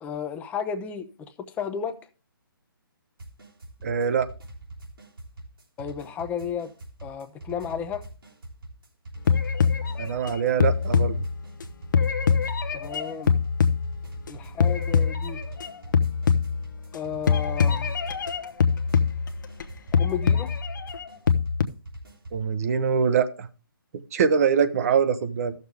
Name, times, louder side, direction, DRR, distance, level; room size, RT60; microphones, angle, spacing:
voice 1, 0.0-2.0 5.8-6.7 7.0-8.1 12.7-13.4 14.3-15.4 16.9-17.9 19.9-20.5, left 7 dB, 10° left, 0.7 m, -33 dB
sound 1, 3.2-22.4, right 1 dB, 75° right, 3.2 m, -43 dB
voice 2, 3.8-4.3 10.0-11.2 22.3-23.5 24.1-25.5, right 6 dB, 40° right, 0.9 m, -23 dB
sound 2, 9.3-11.6 11.9-14.3 14.6-15.7 15.9-17.0 17.3-19.6 19.9-21.6, left 6 dB, 60° left, 0.9 m, -23 dB
14.0 x 6.7 x 3.4 m
figure-of-eight pair, 145°, 12 cm